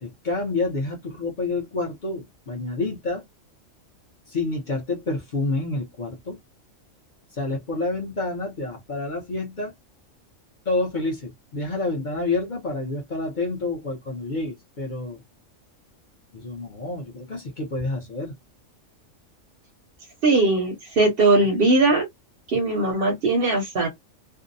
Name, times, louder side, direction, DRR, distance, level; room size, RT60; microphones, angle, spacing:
voice 1, 0.0-3.2 4.3-6.4 7.4-9.7 10.7-15.2 16.3-18.3, left 2 dB, 45° left, 0.7 m, -28 dB
voice 2, 20.2-22.1 22.5-23.9, right 2 dB, 60° right, 0.7 m, -20 dB
2.6 x 2.0 x 2.5 m
omnidirectional pair, 1.3 m